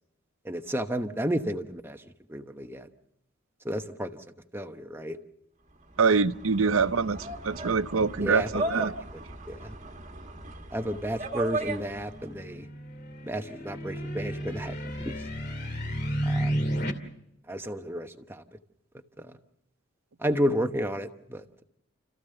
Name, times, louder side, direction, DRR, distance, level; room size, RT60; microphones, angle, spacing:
voice 1, 0.4-2.0 2.3-2.9 3.6-4.2 4.5-5.2 8.2-9.0 9.5-9.7 10.7-12.7 13.2-15.2 16.3-16.5 17.5-18.4 19.2-19.3 20.2-21.6, equal, 10° right, 1.0 m, -32 dB
sound 1, 5.9-12.3, right 2 dB, 35° right, 1.7 m, -36 dB
voice 2, 6.0-8.9, right 5 dB, 80° right, 0.7 m, -25 dB
sound 2, 12.0-16.9, equal, 50° left, 2.5 m, -32 dB
30.0 x 15.0 x 6.8 m
head